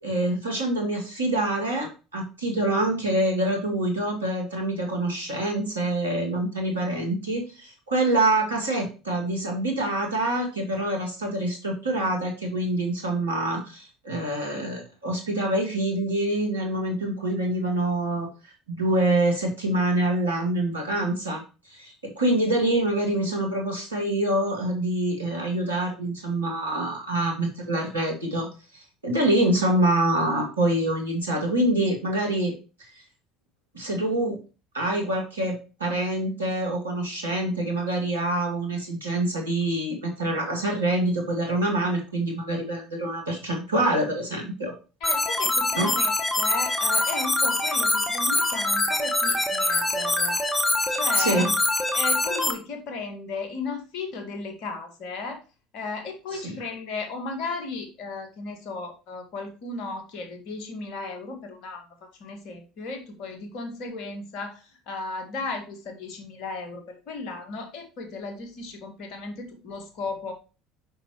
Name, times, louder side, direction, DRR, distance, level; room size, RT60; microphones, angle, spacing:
voice 1, 0.0-18.3 18.7-28.5 28.7-32.5 32.9-33.0 33.7-34.4 34.7-44.7 45.8-45.9 51.2-51.5 56.3-56.6, right 1 dB, 85° right, 0 dB, 1.9 m, -26 dB
voice 2, 45.0-50.4 50.9-51.5 51.9-55.4 55.7-61.9 62.2-70.3, left 3 dB, 55° left, 4 dB, 1.8 m, -35 dB
sound 1, 45.0-52.5, left 2 dB, 15° left, 1.2 m, -24 dB
6.6 x 5.7 x 3.1 m, 0.32 s
figure-of-eight pair, 65°, 0 cm